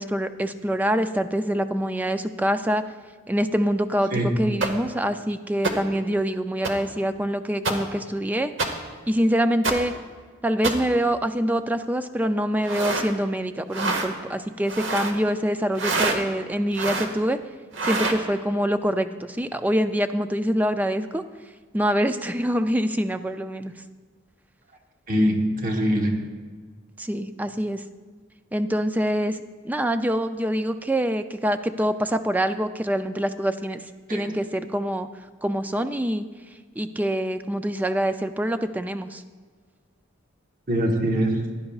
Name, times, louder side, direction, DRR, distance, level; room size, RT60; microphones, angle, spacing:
voice 1, 0.0-2.8 3.3-8.5 9.1-9.9 10.4-17.4 17.8-21.2 21.7-23.7 27.0-27.8 28.5-29.4 29.6-33.8 34.1-35.1 35.4-36.3 36.8-39.2, equal, 10° right, 9 dB, 0.3 m, -25 dB
sound 1, 4.6-4.7 5.6-5.7 6.6-6.7 7.6-7.7 8.6-8.7 9.6-9.7 10.6-10.7 12.6-13.1 13.7-14.1 14.6-15.1 15.7-16.2 16.7-17.1 17.7-18.2, right 3 dB, 65° right, 1.1 m, -25 dB
voice 2, 25.1-26.2 34.1-34.3 40.7-41.4, equal, 45° right, 2 dB, 1.2 m, -23 dB
15.5 x 10.5 x 2.4 m, 1.5 s
head